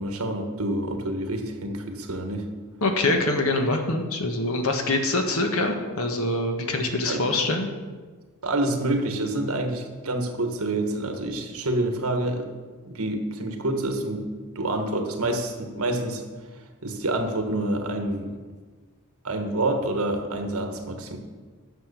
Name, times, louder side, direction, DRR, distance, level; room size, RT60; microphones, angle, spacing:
voice 1, 0.0-2.5 7.1-7.2 8.4-12.5 12.8-14.3 14.5-16.2 16.8-18.3 19.2-21.2, right 1 dB, 70° right, 4 dB, 1.5 m, -27 dB
voice 2, 2.8-7.7, left 2 dB, 70° left, 4 dB, 1.4 m, -24 dB
9.4 x 6.9 x 6.9 m, 1.4 s
head